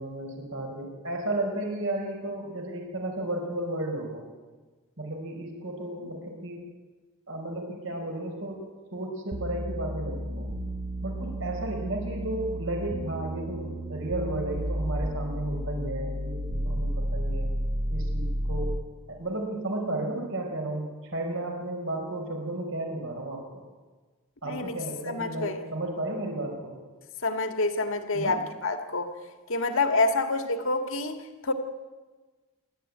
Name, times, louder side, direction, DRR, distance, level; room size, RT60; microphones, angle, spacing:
voice 1, 0.0-4.2 5.0-6.6 7.3-8.6 8.9-10.5 11.0-17.5 17.9-18.8 19.1-20.8 21.1-23.6 24.4-26.8 28.1-28.4, right 1 dB, 60° right, 2 dB, 4.7 m, -33 dB
sound 1, 9.3-18.9, equal, 30° right, 1.2 m, -32 dB
voice 2, 24.4-24.8 25.1-25.6 27.2-29.1 29.5-31.2 31.4-31.5, left 3 dB, 65° left, 6 dB, 2.0 m, -27 dB
26.5 x 12.5 x 9.5 m, 1.3 s
head